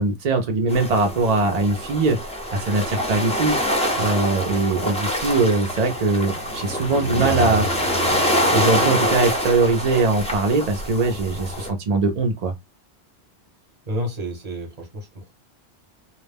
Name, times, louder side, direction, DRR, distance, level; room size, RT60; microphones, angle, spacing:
voice 1, 0.0-2.2 2.5-3.6 4.0-7.7 8.5-12.5, right 3 dB, 60° right, 0.4 m, -21 dB
sound 1, 0.7-11.7, equal, 10° left, 0.4 m, -25 dB
Car, 3.6-11.5, right 2 dB, 85° left, 1.0 m, -35 dB
voice 2, 13.9-15.3, equal, 40° right, 0.9 m, -30 dB
2.3 x 2.0 x 3.3 m
omnidirectional pair, 1.2 m